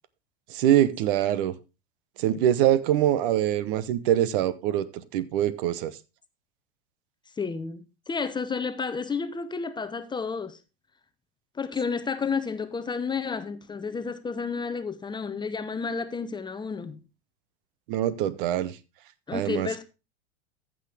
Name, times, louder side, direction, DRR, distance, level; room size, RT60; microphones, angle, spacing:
voice 1, 0.5-1.5 2.2-5.9 17.9-18.7 19.3-19.8, right 11 dB, 55° right, 1.0 m, -24 dB
voice 2, 7.4-10.6 11.5-17.0 19.3-19.8, left 5 dB, 15° left, 0.8 m, -31 dB
14.5 x 6.3 x 3.4 m
hypercardioid pair, 95°, 32 cm